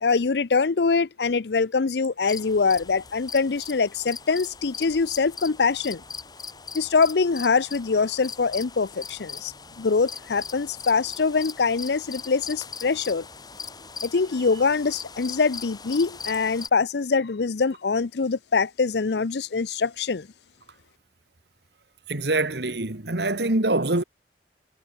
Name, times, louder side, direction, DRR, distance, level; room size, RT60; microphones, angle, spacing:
voice 1, 0.0-6.0 6.7-13.3 14.0-20.3, left 4 dB, 70° left, 0.6 m, -24 dB
sound 1, 2.2-16.7, left 5 dB, 20° left, 4.1 m, -40 dB
voice 2, 22.1-24.0, right 2 dB, 70° right, 2.0 m, -24 dB
head